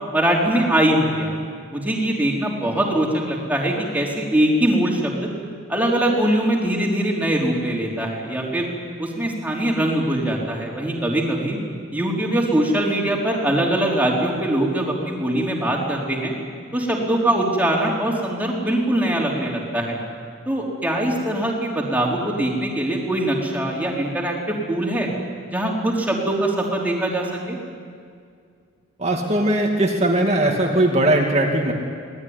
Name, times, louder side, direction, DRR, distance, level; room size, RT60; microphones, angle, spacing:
voice 1, 0.1-1.3 1.7-5.3 5.7-8.7 9.0-11.6 11.9-16.3 16.7-20.0 20.5-25.1 25.5-27.6, right 1 dB, 10° right, -2 dB, 3.8 m, -22 dB
voice 2, 29.0-31.7, right 1 dB, 30° right, 0 dB, 2.2 m, -19 dB
24.5 x 18.5 x 9.7 m, 2.2 s
head